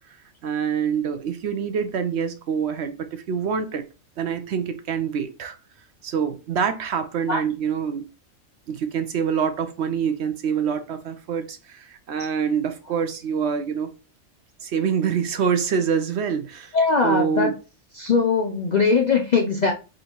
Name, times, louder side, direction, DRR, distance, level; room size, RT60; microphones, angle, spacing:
voice 1, 0.4-3.9 4.2-5.6 6.0-8.1 8.7-13.9 14.6-16.8 17.0-17.5, right 7 dB, 65° right, 0.8 m, -25 dB
voice 2, 16.7-17.5 18.0-19.7, left 4 dB, 55° left, 0.4 m, -20 dB
3.7 x 2.6 x 4.4 m
omnidirectional pair, 1.4 m